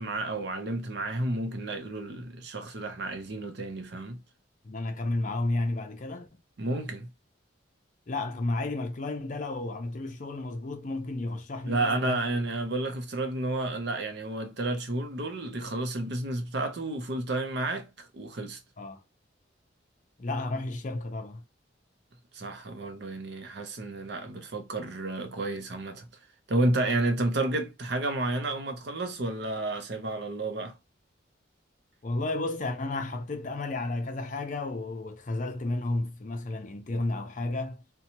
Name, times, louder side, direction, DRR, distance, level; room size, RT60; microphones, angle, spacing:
voice 1, 0.0-4.2 6.6-7.1 11.7-18.6 22.3-26.1 26.5-30.8, right 2 dB, 55° right, 0.6 m, -31 dB
voice 2, 4.6-6.3 8.1-12.2 18.8-19.0 20.2-21.4 32.0-37.8, left 2 dB, 40° left, 0.5 m, -32 dB
2.8 x 2.2 x 2.8 m
head